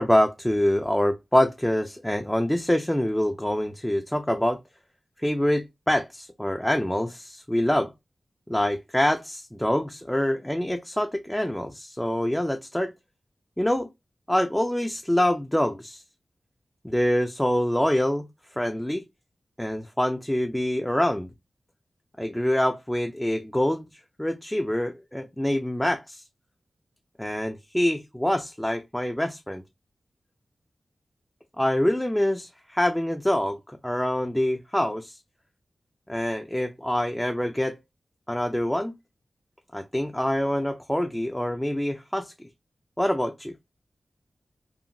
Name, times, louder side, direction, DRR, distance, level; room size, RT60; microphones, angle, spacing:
voice 1, 0.0-4.6 5.2-7.9 8.5-12.9 13.6-13.9 14.3-16.0 16.8-18.3 18.6-19.0 19.6-21.3 22.2-26.2 27.2-29.6 31.6-35.2 36.1-37.8 38.3-38.9 39.7-42.3 43.0-43.5, left 1 dB, 5° left, 0.3 m, -25 dB
2.8 x 2.4 x 2.5 m
wide cardioid pair, 80°, 0 cm